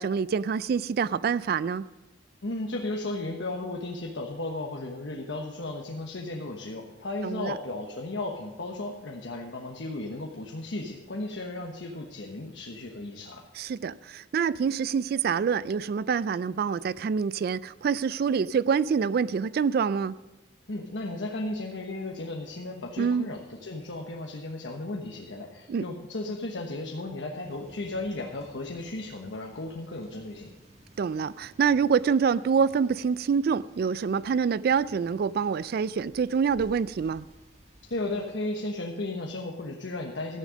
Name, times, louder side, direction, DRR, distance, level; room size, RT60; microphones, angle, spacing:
voice 1, 0.0-1.9 7.2-7.6 13.6-20.2 23.0-23.3 25.7-25.8 31.0-37.3, right 6 dB, 55° right, 0.3 m, -26 dB
voice 2, 2.4-13.4 20.7-30.5 37.8-40.4, left 2 dB, 80° left, 1.2 m, -35 dB
sound 1, 27.4-38.4, right 1 dB, 35° right, 1.9 m, -56 dB
14.0 x 10.0 x 5.1 m
head